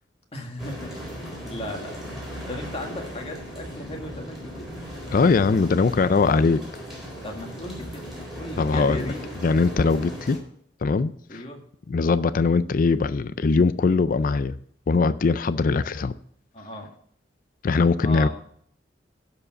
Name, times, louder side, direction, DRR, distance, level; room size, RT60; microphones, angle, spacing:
voice 1, 0.3-1.1 1.4-4.7 7.2-9.2 11.3-11.6 16.5-16.9 18.0-18.3, left 1 dB, 35° left, 1.8 m, -36 dB
sound 1, 0.6-10.4, equal, ahead, 4.1 m, -37 dB
voice 2, 5.1-6.6 8.6-9.1 9.4-10.4 10.8-11.4 11.9-14.5 14.9-16.1 17.6-18.3, left 4 dB, 50° left, 0.4 m, -21 dB
11.5 x 4.9 x 7.4 m
head